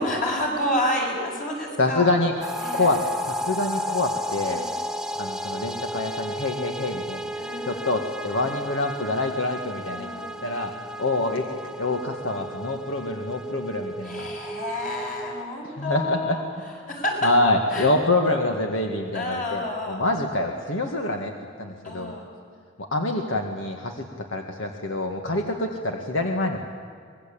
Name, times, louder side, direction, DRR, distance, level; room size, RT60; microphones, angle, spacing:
voice 1, 0.0-2.2 2.6-2.9 4.5-4.7 7.4-8.0 8.3-8.5 9.0-9.2 9.9-10.4 14.0-17.3 17.7-17.9 18.3-18.4 19.1-20.0 21.8-22.2, left 1 dB, 45° left, -1 dB, 7.2 m, -29 dB
voice 2, 1.8-2.3 2.7-3.0 3.3-4.6 5.2-7.3 7.6-10.1 10.4-10.7 11.0-11.4 11.8-14.3 15.6-16.4 17.2-21.3 21.6-22.1 22.8-24.1 24.3-26.6, left 2 dB, 80° left, 3 dB, 1.9 m, -26 dB
sound 1, 2.4-15.4, equal, 5° right, 0.6 m, -33 dB
25.0 x 21.0 x 8.6 m, 2.2 s
head